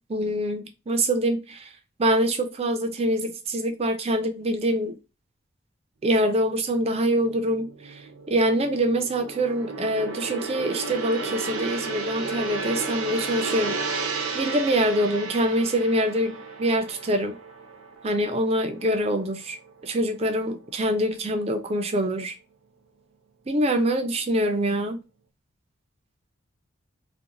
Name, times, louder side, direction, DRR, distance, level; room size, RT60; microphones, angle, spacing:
voice 1, 0.1-1.7 2.0-5.0 6.0-14.0 14.3-17.3 18.0-19.6 19.8-22.3 23.5-25.0, right 1 dB, 30° right, 0.4 m, -25 dB
Gong, 6.8-19.2 19.6-19.8, right 4 dB, 85° right, 0.6 m, -33 dB
2.5 x 2.2 x 2.8 m
head